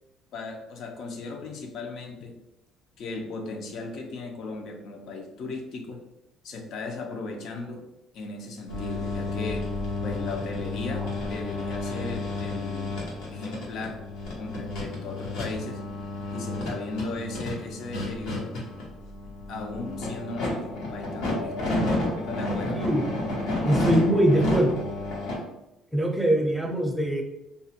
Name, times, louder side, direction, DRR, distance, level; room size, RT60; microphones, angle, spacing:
voice 1, 0.3-2.3 3.0-6.0 6.4-7.8 8.1-9.6 10.0-12.9 13.3-14.0 14.4-15.8 16.3-18.5 19.5-21.7 22.3-22.8, left 3 dB, 65° left, 3 dB, 0.5 m, -36 dB
sound 1, 8.7-25.3, left 2 dB, 80° left, 0.9 m, -31 dB
voice 2, 22.7-23.1 23.6-24.9 25.9-27.2, right 1 dB, 5° right, 1 dB, 0.5 m, -23 dB
2.4 x 2.1 x 2.7 m, 0.92 s
cardioid pair, 105°, 0 cm